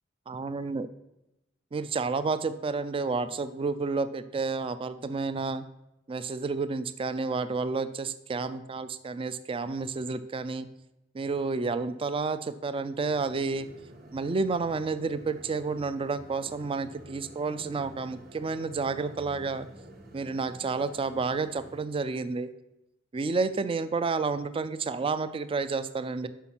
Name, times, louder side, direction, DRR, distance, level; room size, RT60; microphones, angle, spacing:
voice 1, 0.3-0.9 1.7-5.6 6.1-10.7 11.1-13.7 14.1-19.7 20.1-22.5 23.1-26.3, right 4 dB, 25° right, 12 dB, 0.3 m, -30 dB
sound 1, 13.0-21.9, right 1 dB, 50° right, 1.1 m, -50 dB
5.7 x 5.6 x 6.0 m, 0.90 s
head